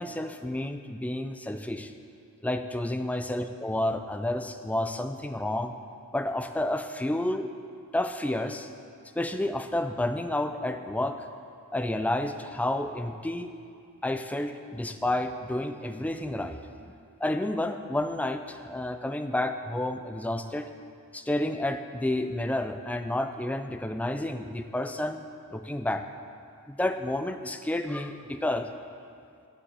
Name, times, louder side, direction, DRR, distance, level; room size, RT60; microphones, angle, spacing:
voice 1, 0.0-1.9 2.4-5.7 6.1-7.5 7.9-8.7 9.2-11.3 11.7-13.5 14.0-16.9 17.2-20.7 21.1-25.2 25.5-26.0 26.7-28.7, left 1 dB, 5° left, 8 dB, 0.3 m, -30 dB
11.5 x 4.9 x 6.7 m, 2.4 s
head